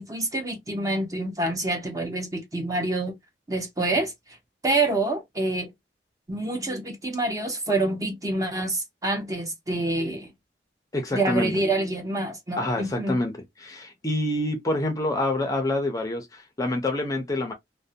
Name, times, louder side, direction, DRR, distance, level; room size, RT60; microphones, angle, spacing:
voice 1, 0.0-3.2 3.5-4.4 4.6-5.7 6.3-10.3 11.1-13.2, right 2 dB, 20° right, 0.7 m, -27 dB
voice 2, 10.9-11.5 12.6-13.3 13.6-17.5, left 1 dB, 20° left, 0.5 m, -27 dB
2.5 x 2.1 x 2.4 m
head